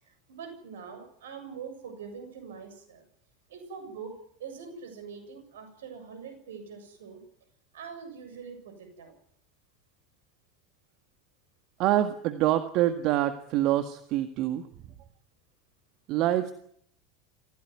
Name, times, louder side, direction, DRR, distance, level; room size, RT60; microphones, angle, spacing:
voice 1, 0.0-3.1 3.5-7.2 7.7-9.2, right 6 dB, 70° right, 8 dB, 7.4 m, -43 dB
voice 2, 11.8-14.6 16.1-16.5, right 13 dB, 50° right, 9 dB, 1.7 m, -25 dB
25.5 x 16.5 x 9.5 m, 0.69 s
figure-of-eight pair, 80°, 0 cm